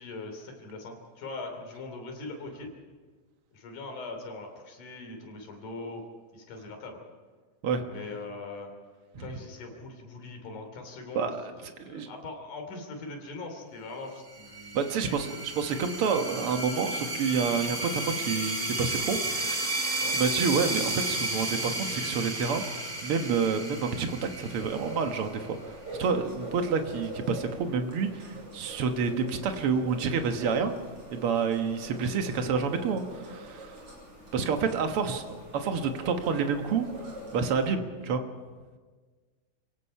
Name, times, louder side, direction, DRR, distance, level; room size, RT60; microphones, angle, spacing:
voice 1, 0.0-2.7 3.5-6.0 6.3-7.0 7.9-8.7 9.2-15.2 20.0-20.2, left 3 dB, 60° left, 3 dB, 4.5 m, -41 dB
voice 2, 11.1-11.5 11.8-12.1 14.7-19.6 19.8-30.7 31.1-33.8 34.3-36.9 37.3-38.2, right 5 dB, 65° right, 6 dB, 1.4 m, -29 dB
sound 1, 14.3-25.5, right 2 dB, 15° right, 2.3 m, -33 dB
sound 2, 24.3-37.7, right 1 dB, 35° right, 7.1 m, -44 dB
28.5 x 17.5 x 5.6 m, 1.4 s
omnidirectional pair, 4.3 m